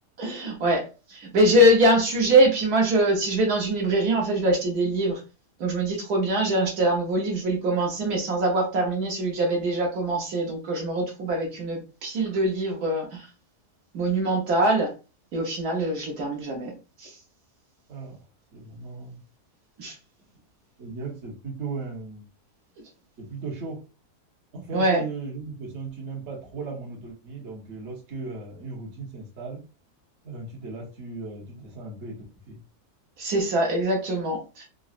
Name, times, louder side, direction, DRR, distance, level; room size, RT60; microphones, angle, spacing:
voice 1, 0.2-0.8 1.1-5.2 5.6-13.3 13.9-14.9 15.3-16.7 17.0-17.1 19.8-19.9 24.7-25.0 33.2-34.6, right 1 dB, 70° right, -1 dB, 1.3 m, -23 dB
voice 2, 17.9-18.2 18.5-19.2 20.8-22.2 23.2-23.8 24.5-29.6 30.2-32.6, right 3 dB, 50° right, -2 dB, 1.1 m, -37 dB
3.7 x 2.0 x 2.4 m, 0.32 s
omnidirectional pair, 1.7 m